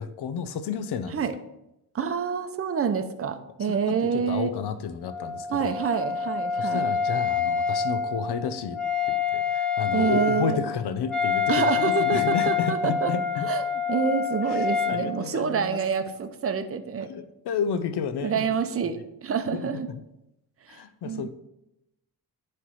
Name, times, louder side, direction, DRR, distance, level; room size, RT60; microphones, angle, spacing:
voice 1, 0.0-1.2 3.8-5.7 6.6-8.8 9.1-13.5 14.5-15.8 17.0-18.5 19.5-19.8 20.7-21.3, left 7 dB, 70° left, 11 dB, 0.8 m, -32 dB
voice 2, 1.9-4.5 5.5-6.8 9.9-10.6 11.5-13.1 13.4-17.1 18.2-19.9 20.7-21.3, right 6 dB, 35° right, 8 dB, 0.7 m, -27 dB
Wind instrument woodwind instrument, 5.0-15.0, left 6 dB, ahead, 1.1 m, -27 dB
10.0 x 3.3 x 5.7 m, 0.86 s
cardioid pair, 115°, 40 cm